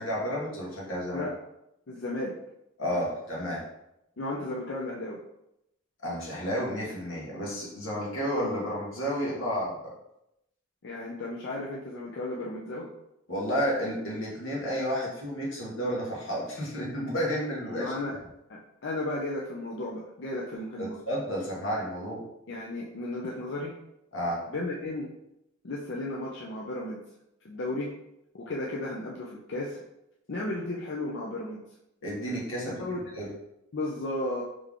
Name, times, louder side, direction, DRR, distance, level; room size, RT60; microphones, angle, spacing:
voice 1, 0.0-1.3 2.8-3.6 6.0-9.9 13.3-17.9 20.3-20.4 20.8-22.2 24.1-24.4 32.0-32.8 33.1-33.3, equal, 85° left, -4 dB, 1.4 m, -31 dB
voice 2, 1.9-2.3 4.2-5.2 10.8-12.9 17.7-18.2 18.5-21.0 22.5-23.7 24.5-25.1 25.6-27.0 27.4-27.9 28.3-29.8 30.3-31.6 32.6-33.0 33.7-34.4, left 2 dB, 60° left, -3 dB, 0.5 m, -34 dB
3.5 x 3.4 x 3.6 m, 0.84 s
head